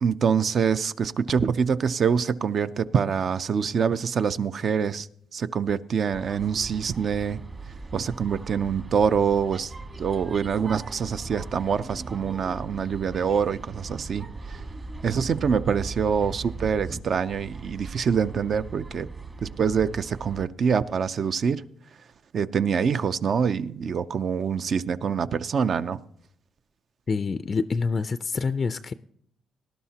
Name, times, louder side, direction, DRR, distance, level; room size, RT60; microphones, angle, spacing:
voice 1, 0.0-7.4 7.9-9.7 10.0-14.6 15.0-19.1 19.4-21.6 22.3-26.0, right 6 dB, 55° right, 0.5 m, -25 dB
sound 1, 6.1-20.5, right 3 dB, 35° right, 1.4 m, -39 dB
voice 2, 27.1-28.9, left 4 dB, 40° left, 0.4 m, -26 dB
18.5 x 11.5 x 2.8 m
cardioid pair, 90°, 0 cm